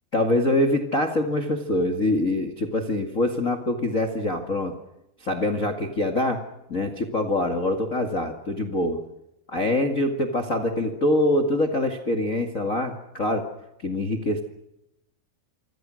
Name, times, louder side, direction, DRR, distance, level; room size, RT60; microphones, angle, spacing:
voice 1, 0.1-4.7 5.2-6.4 6.7-9.0 9.5-13.5 13.8-14.4, left 1 dB, 75° left, 4 dB, 0.7 m, -24 dB
28.0 x 26.0 x 6.4 m, 0.86 s
omnidirectional pair, 5.4 m